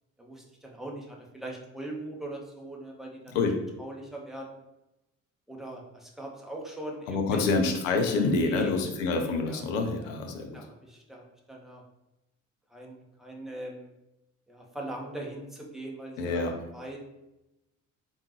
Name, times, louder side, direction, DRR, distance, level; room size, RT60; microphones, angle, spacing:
voice 1, 0.2-3.4 3.8-4.5 5.5-7.5 8.3-8.7 9.0-9.6 10.5-11.8 12.7-13.9 14.5-17.0, right 1 dB, ahead, -1 dB, 0.9 m, -41 dB
voice 2, 7.1-10.6 16.2-16.5, left 3 dB, 70° left, 4 dB, 0.6 m, -27 dB
3.5 x 2.5 x 3.0 m, 0.92 s
figure-of-eight pair, 45°, 40 cm